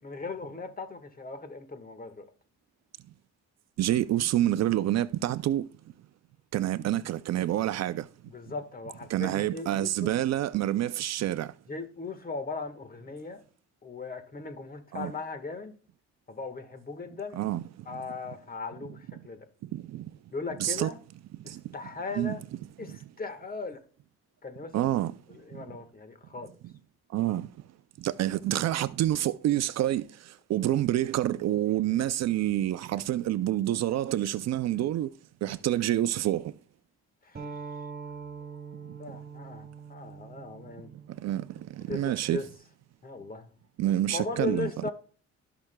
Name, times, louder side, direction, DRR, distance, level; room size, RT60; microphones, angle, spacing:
voice 1, 0.0-2.3 8.3-10.1 11.7-13.4 13.8-15.7 16.3-17.4 17.8-19.5 20.3-21.0 21.4-22.4 22.8-23.8 24.4-24.9 25.3-26.5 37.2-37.6 39.0-40.9 41.9-42.5 43.0-43.5 44.1-44.9, left 3 dB, 30° left, 1.5 m, -38 dB
voice 2, 3.8-5.7 6.5-8.1 9.1-11.5 14.9-15.1 17.4-17.6 19.7-20.1 20.6-20.9 21.5-21.6 22.2-22.4 24.7-25.1 25.5-25.6 27.1-27.5 28.0-30.1 30.5-35.1 35.4-36.5 41.2-41.5 41.8-42.4 43.8-44.7, right 13 dB, 60° right, 0.5 m, -27 dB
sound 1, 37.3-42.5, right 5 dB, 30° right, 2.2 m, -44 dB
18.0 x 6.0 x 2.2 m
cardioid pair, 90°, 30 cm